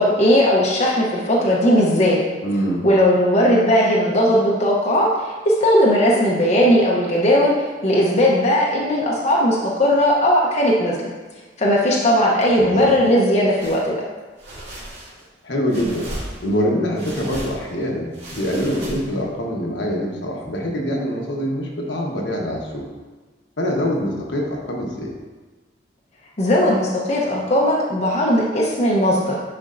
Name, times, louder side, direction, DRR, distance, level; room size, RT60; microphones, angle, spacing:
voice 1, 0.0-2.2 2.8-7.5 7.8-11.1 11.6-13.9 26.4-29.4, equal, 35° left, -4 dB, 0.8 m, -17 dB
voice 2, 2.4-2.8 12.6-12.9 15.4-16.1 16.4-22.9 23.6-25.1, equal, 70° left, -1 dB, 1.1 m, -24 dB
sound 1, 13.6-13.8 14.4-15.2 15.7-16.6 16.9-17.7 18.1-19.3, right 1 dB, 65° right, 2.0 m, -35 dB
9.9 x 4.3 x 2.6 m, 1.3 s
head